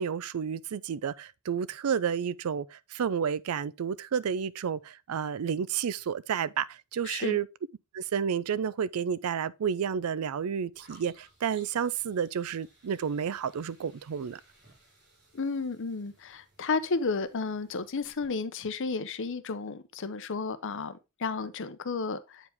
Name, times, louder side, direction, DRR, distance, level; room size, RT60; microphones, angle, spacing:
voice 1, 0.0-7.5 7.9-14.4, right 7 dB, 85° right, 0.4 m, -31 dB
voice 2, 7.0-7.4 15.3-22.5, left 4 dB, 60° left, 0.7 m, -32 dB
sound 1, 10.7-18.2, right 1 dB, 55° right, 5.0 m, -61 dB
8.0 x 4.8 x 3.4 m
head